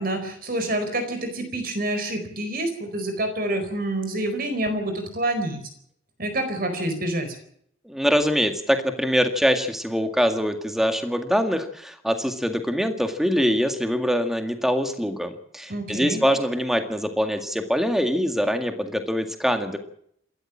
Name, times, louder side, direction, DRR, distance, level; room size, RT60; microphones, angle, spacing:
voice 1, 0.0-5.6 6.2-7.4 15.7-16.2, right 1 dB, 50° right, 7 dB, 4.5 m, -27 dB
voice 2, 7.9-19.8, equal, ahead, 6 dB, 2.0 m, -23 dB
28.0 x 13.5 x 7.3 m, 0.69 s
head